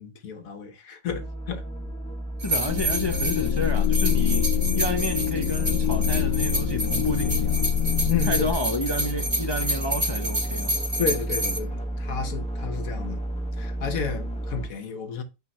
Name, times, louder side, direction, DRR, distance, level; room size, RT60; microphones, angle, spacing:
voice 1, 0.0-1.6 8.0-8.5 11.0-13.2 13.6-15.2, left 6 dB, 65° left, 1.4 m, -32 dB
sound 1, 1.1-14.7, right 1 dB, 5° left, 0.7 m, -33 dB
voice 2, 2.4-7.7 8.2-10.8, left 2 dB, 40° left, 0.3 m, -30 dB
sound 2, 2.4-11.6, right 1 dB, 40° right, 2.6 m, -29 dB
sound 3, 2.7-8.5, left 8 dB, 80° left, 1.3 m, -25 dB
8.6 x 3.4 x 3.2 m
omnidirectional pair, 1.6 m